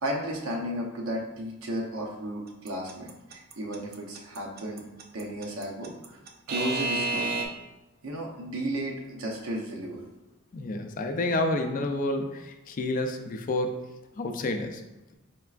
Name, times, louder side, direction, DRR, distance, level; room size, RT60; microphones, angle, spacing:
voice 1, 0.0-4.8 5.1-6.2 6.5-7.5 8.0-10.1, right 1 dB, 90° right, -1 dB, 0.8 m, -34 dB
Alarm / Clock, 2.7-7.4, right 2 dB, 50° right, 0.4 m, -30 dB
voice 2, 10.5-13.8 14.2-14.8, left 2 dB, 40° left, 6 dB, 0.4 m, -29 dB
4.6 x 3.3 x 2.4 m, 1.0 s
head